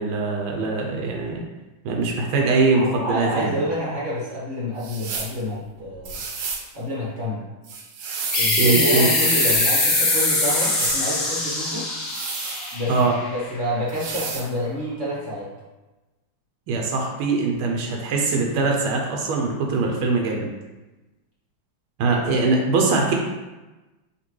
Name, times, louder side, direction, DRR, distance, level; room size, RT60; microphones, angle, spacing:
voice 1, 0.0-1.4 1.8-3.6 8.6-9.1 12.9-13.1 16.7-20.5 22.0-23.1, right 3 dB, 85° right, 1 dB, 1.5 m, -22 dB
voice 2, 2.7-6.2 6.7-7.5 8.3-11.9 12.7-13.0 13.2-15.5, equal, 50° right, -6 dB, 0.9 m, -28 dB
sound 1, 4.8-5.4 6.0-6.7 7.6-8.5 9.0-9.7 10.4-11.0 12.0-13.1 13.9-14.5, right 5 dB, 70° right, 1.2 m, -32 dB
sound 2, 8.3-13.6, left 2 dB, 45° left, 0.9 m, -22 dB
5.1 x 2.8 x 3.1 m, 1.1 s
omnidirectional pair, 2.3 m